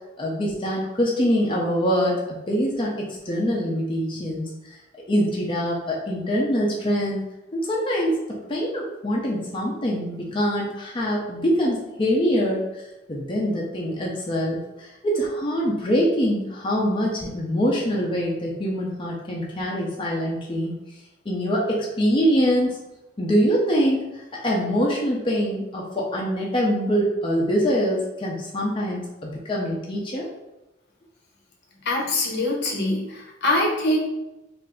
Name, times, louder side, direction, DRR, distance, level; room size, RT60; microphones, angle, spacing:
voice 1, 0.2-2.2 2.5-4.4 5.1-7.2 7.5-8.1 8.5-12.8 13.1-20.8 21.3-22.8 23.2-30.3, equal, 30° left, -3 dB, 0.5 m, -24 dB
voice 2, 31.8-34.0, left 1 dB, 60° left, 0 dB, 0.8 m, -23 dB
3.2 x 2.5 x 3.7 m, 0.96 s
head